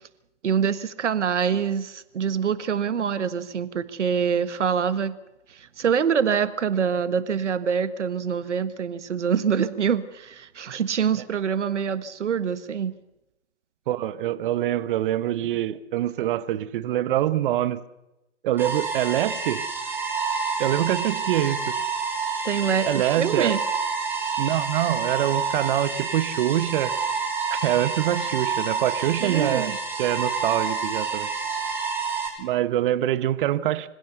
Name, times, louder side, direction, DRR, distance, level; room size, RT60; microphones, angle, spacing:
voice 1, 0.4-5.2 5.5-12.9 22.4-23.6 29.2-29.8, right 7 dB, 70° right, 13 dB, 1.6 m, -25 dB
voice 2, 13.9-17.8 18.4-19.6 20.6-21.7 22.8-23.5 24.4-26.9 27.5-31.3 32.4-33.9, right 12 dB, 45° right, 14 dB, 1.3 m, -25 dB
sound 1, 18.6-32.3, right 5 dB, 5° right, 5.3 m, -28 dB
26.0 x 16.5 x 6.8 m, 0.92 s
figure-of-eight pair, 120°, 37 cm